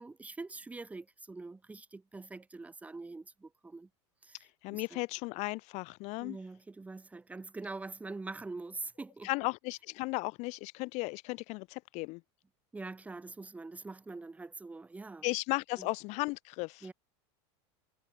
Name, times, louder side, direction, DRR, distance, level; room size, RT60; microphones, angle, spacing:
voice 1, 0.0-3.9 4.2-4.5 4.7-5.0 6.2-9.3 12.7-15.3 15.8-15.9 16.8-16.9, right 3 dB, 10° right, 1.2 m, -44 dB
voice 2, 4.6-6.4 9.2-12.2 15.2-16.9, left 25 dB, 50° left, 0.7 m, -35 dB
supercardioid pair, 130°, 15 cm